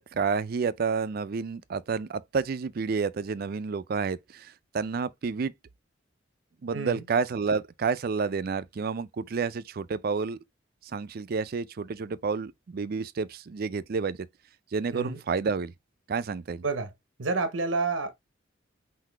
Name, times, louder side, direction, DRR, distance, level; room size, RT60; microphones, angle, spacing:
voice 1, 0.0-5.5 6.6-10.4 10.9-14.2 14.7-15.7 16.1-16.6, right 5 dB, 50° right, 0.4 m, -30 dB
voice 2, 6.7-7.0 14.9-15.2 16.6-16.9 17.2-18.1, right 3 dB, 80° right, 0.8 m, -29 dB
5.8 x 2.7 x 3.3 m
head